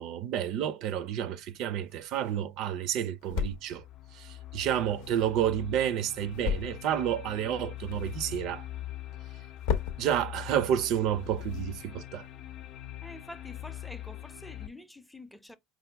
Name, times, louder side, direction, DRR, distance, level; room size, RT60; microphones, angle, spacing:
voice 1, 0.0-3.8 4.1-8.7 10.0-12.3, right 10 dB, 60° right, 0.4 m, -30 dB
sound 1, 1.1-12.3, left 7 dB, 85° left, 0.7 m, -39 dB
sound 2, 3.3-14.7, left 14 dB, 50° left, 0.5 m, -43 dB
voice 2, 13.0-15.6, left 1 dB, 5° left, 0.5 m, -47 dB
4.6 x 2.1 x 3.3 m
supercardioid pair, 110°, 0 cm